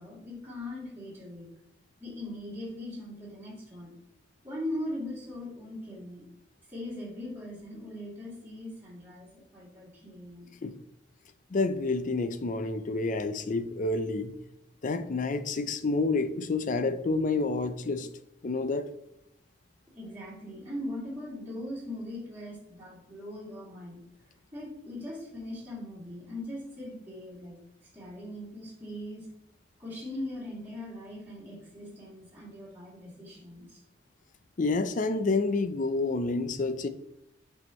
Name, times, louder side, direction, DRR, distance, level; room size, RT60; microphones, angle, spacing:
voice 1, 0.0-1.5 2.0-3.9 4.4-6.2 6.7-10.5 19.9-24.0 24.5-27.6 27.9-29.3 29.8-33.8, left 1 dB, 10° right, 2.7 m, -40 dB
voice 2, 11.5-14.3 14.8-18.1 18.4-18.9 34.6-36.9, left 3 dB, 45° left, 0.5 m, -29 dB
7.8 x 5.6 x 3.1 m
head